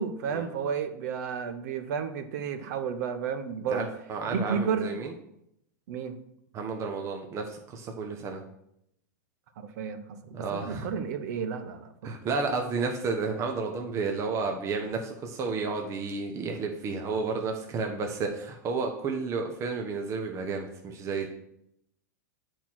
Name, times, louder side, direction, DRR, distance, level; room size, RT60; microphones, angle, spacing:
voice 1, 0.0-3.9 4.3-5.0 5.9-6.2 9.6-11.9, right 6 dB, 65° right, 9 dB, 1.0 m, -32 dB
voice 2, 3.7-5.1 6.5-8.4 10.3-10.9 12.0-21.3, right 4 dB, 30° right, 3 dB, 1.0 m, -31 dB
8.2 x 4.6 x 6.0 m, 0.78 s
hypercardioid pair, 125°, 10 cm